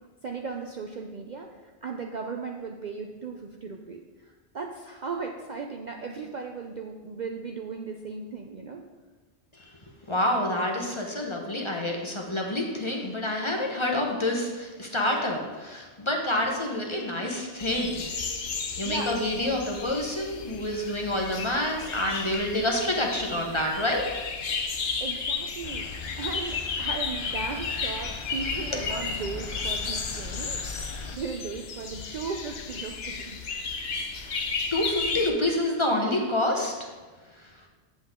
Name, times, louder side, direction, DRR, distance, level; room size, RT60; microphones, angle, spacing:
voice 1, 0.2-8.8 18.7-19.1 25.0-25.9 26.2-33.4 34.1-34.4, right 4 dB, 50° right, 2 dB, 0.6 m, -37 dB
voice 2, 10.1-18.1 18.8-24.1 24.4-24.7 28.4-28.8 34.7-36.7, left 1 dB, 25° left, 0 dB, 1.0 m, -28 dB
sound 1, 17.6-35.3, left 4 dB, 60° left, 1.0 m, -33 dB
sound 2, 25.6-31.2, left 4 dB, 45° left, 0.4 m, -39 dB
7.9 x 7.4 x 3.7 m, 1.3 s
omnidirectional pair, 1.2 m